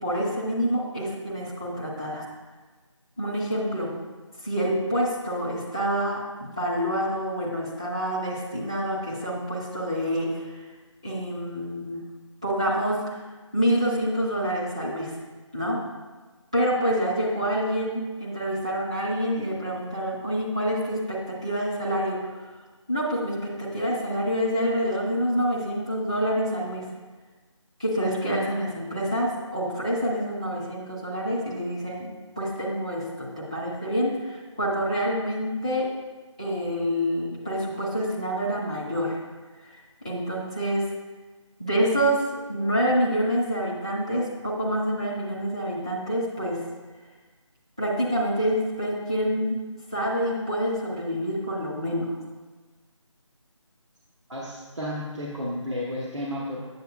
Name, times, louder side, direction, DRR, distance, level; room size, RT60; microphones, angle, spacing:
voice 1, 0.0-2.2 3.2-3.9 4.4-10.5 11.0-12.0 12.4-13.2 13.5-15.1 15.5-15.8 16.5-22.2 22.9-26.8 27.8-32.1 32.4-35.9 36.4-39.2 39.6-40.8 41.6-42.2 42.5-46.6 47.8-49.6 49.9-52.2, equal, 10° right, -7 dB, 0.4 m, -27 dB
voice 2, 54.3-56.6, left 1 dB, 65° right, -5 dB, 1.1 m, -32 dB
7.7 x 7.2 x 2.3 m, 1.3 s
figure-of-eight pair, 160°, 16 cm